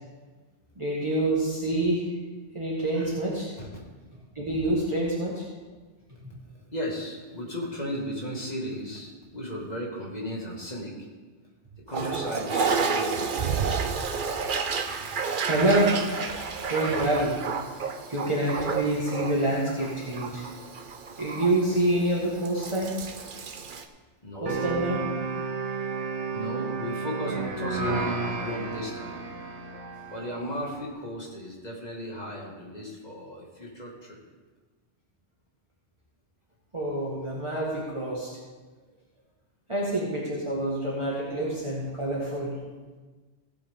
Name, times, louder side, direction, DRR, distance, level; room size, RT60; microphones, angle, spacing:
voice 1, 0.8-2.1 2.5-3.5 4.4-5.5 15.4-16.2 16.6-17.3 18.1-20.4 21.2-22.9 24.4-25.0 36.7-38.4 39.7-42.6, right 1 dB, 25° right, -6 dB, 2.0 m, -27 dB
voice 2, 6.5-10.9 11.9-13.3 24.2-24.6 26.3-29.2 30.1-34.2 41.3-41.5 41.8-41.9, equal, 40° left, -3 dB, 2.5 m, -35 dB
Toilet flush, 11.9-23.8, right 5 dB, 50° right, 0.9 m, -31 dB
sound 1, 24.5-30.4, right 4 dB, 90° right, 1.4 m, -32 dB
16.5 x 8.3 x 3.8 m, 1.3 s
omnidirectional pair, 1.1 m